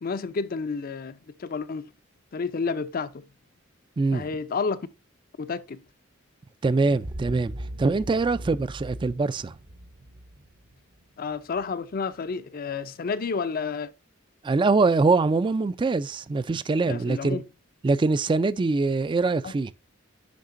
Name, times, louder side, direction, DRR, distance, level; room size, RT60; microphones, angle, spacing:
voice 1, 0.0-1.8 2.3-3.2 4.1-4.9 5.4-5.8 11.2-13.9 16.9-17.4 19.4-19.5, left 5 dB, 45° left, 0.5 m, -30 dB
voice 2, 6.6-7.5 7.8-9.5 14.4-17.4 17.8-19.7, right 3 dB, 25° right, 0.3 m, -23 dB
sound 1, 6.9-11.6, right 1 dB, 55° right, 0.8 m, -40 dB
10.5 x 3.7 x 2.5 m
head